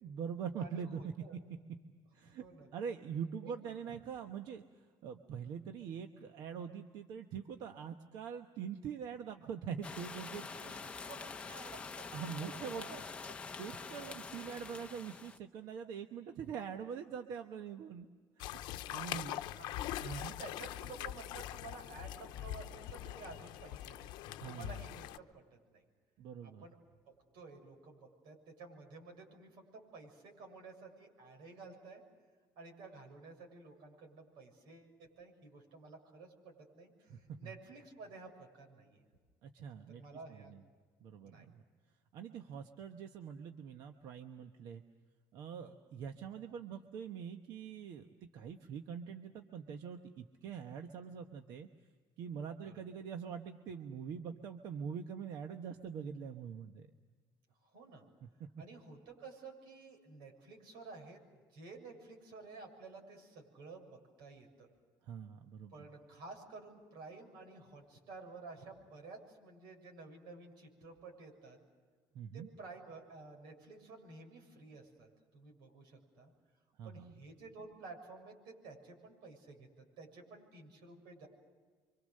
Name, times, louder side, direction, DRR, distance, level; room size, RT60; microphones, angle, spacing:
voice 1, 0.0-1.1 2.1-2.4 2.7-4.6 5.0-10.8 12.1-13.0 13.6-18.1 18.4-18.6 18.9-19.4 20.0-20.3 24.3-24.7 26.2-26.6 37.1-37.5 39.4-40.0 40.3-40.6 41.0-41.6 42.1-44.8 45.3-51.7 52.2-56.9 58.2-58.5 65.1-65.7 72.1-72.5 76.8-77.1, right 7 dB, 60° right, 6 dB, 1.1 m, -44 dB
voice 2, 0.6-1.4 2.3-2.7 3.4-4.0 10.5-13.4 19.0-19.7 20.1-24.1 24.4-25.8 26.4-26.8 27.3-32.0 32.6-39.1 39.9-40.5 41.3-41.5 45.6-45.8 52.6-52.8 57.6-58.0 58.6-64.7 65.7-71.6 72.3-75.1 75.3-76.3 76.8-79.7 80.0-81.3, right 3 dB, 85° right, 3 dB, 7.0 m, -53 dB
sound 1, 9.8-15.4, left 4 dB, 15° left, 0.8 m, -46 dB
sound 2, 18.4-25.2, left 13 dB, 80° left, 0.8 m, -43 dB
29.0 x 25.0 x 6.6 m, 1.5 s
cardioid pair, 175°, 8 cm